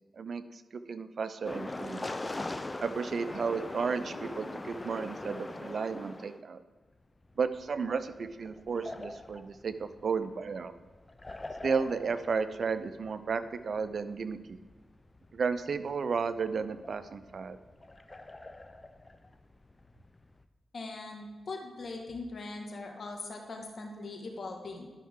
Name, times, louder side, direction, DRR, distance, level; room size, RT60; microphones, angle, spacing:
voice 1, 0.1-2.1 2.8-6.6 7.4-10.7 11.6-14.6 15.3-17.6, right 5 dB, 65° right, 11 dB, 0.6 m, -33 dB
sound 1, 1.4-6.4 7.2-20.4, left 2 dB, 25° left, 0.6 m, -43 dB
voice 2, 20.7-24.9, left 3 dB, 60° left, 1 dB, 1.7 m, -41 dB
12.0 x 5.7 x 3.7 m, 1.4 s
cardioid pair, 55°, 0 cm